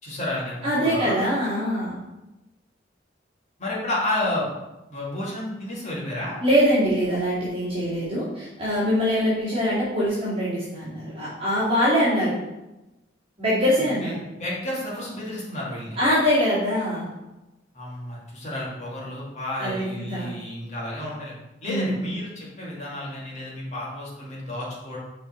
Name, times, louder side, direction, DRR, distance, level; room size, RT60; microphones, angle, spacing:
voice 1, 0.0-1.2 3.6-4.5 4.9-6.4 14.0-14.1 14.4-16.0 17.7-21.3 21.6-25.0, left 1 dB, 40° left, -6 dB, 2.3 m, -31 dB
voice 2, 0.6-2.0 6.4-12.3 13.4-14.2 16.0-17.1 19.6-20.3 21.6-22.0, equal, 30° right, -10 dB, 2.1 m, -23 dB
6.7 x 4.5 x 4.4 m, 1.0 s
head